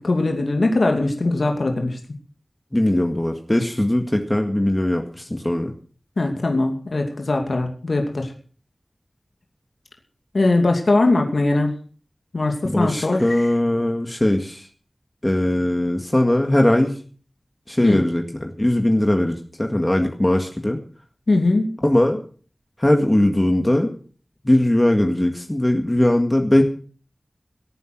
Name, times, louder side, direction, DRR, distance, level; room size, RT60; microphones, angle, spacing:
voice 1, 0.0-2.0 6.2-8.3 10.3-11.7 12.3-13.5 17.8-18.0 21.3-21.7, left 2 dB, 75° left, 3 dB, 2.5 m, -20 dB
voice 2, 2.7-5.7 12.6-14.7 15.2-17.0 17.7-20.8 21.8-22.2 22.8-23.9 24.4-26.6, left 1 dB, 20° left, 4 dB, 1.9 m, -20 dB
17.5 x 9.2 x 6.1 m, 0.42 s
wide cardioid pair, 70°, 0 cm